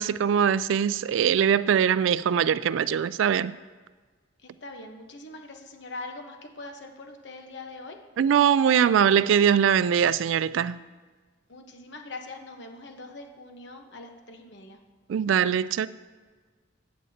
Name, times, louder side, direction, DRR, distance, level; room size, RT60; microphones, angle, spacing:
voice 1, 0.0-3.6 8.2-10.8 15.1-15.9, right 8 dB, 80° right, 0.3 m, -22 dB
voice 2, 4.4-8.0 11.5-14.8, left 2 dB, 65° left, 1.1 m, -42 dB
15.0 x 8.3 x 2.8 m
head